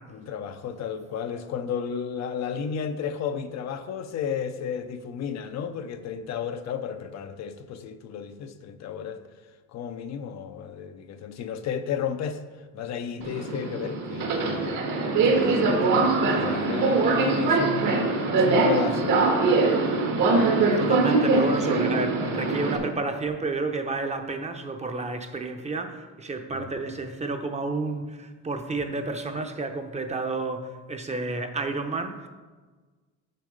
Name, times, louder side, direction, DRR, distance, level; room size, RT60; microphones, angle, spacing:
voice 1, 0.1-9.2 9.7-12.4 12.7-14.8 15.2-19.2 26.5-26.7, left 7 dB, 55° left, 0.6 m, -33 dB
Subway metro underground, 13.2-22.8, right 3 dB, 70° right, 1.6 m, -22 dB
voice 2, 20.8-32.2, right 3 dB, 20° right, 0.7 m, -30 dB
6.7 x 6.3 x 5.0 m
cardioid pair, 120°, 33 cm